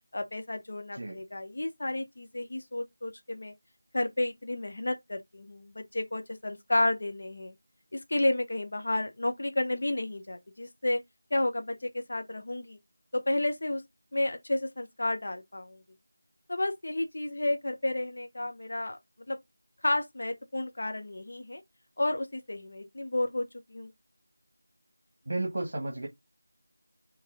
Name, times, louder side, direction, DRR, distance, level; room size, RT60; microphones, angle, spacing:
voice 1, 0.1-3.5 3.9-7.5 7.9-11.0 11.3-12.8 13.1-13.8 14.1-15.8 16.5-19.0 19.3-19.4 19.8-21.6 22.0-23.9, left 1 dB, 50° left, 0.8 m, -31 dB
voice 2, 25.3-26.1, right 2 dB, 50° right, 1.4 m, -33 dB
4.5 x 3.1 x 3.7 m
figure-of-eight pair, 175°, 0 cm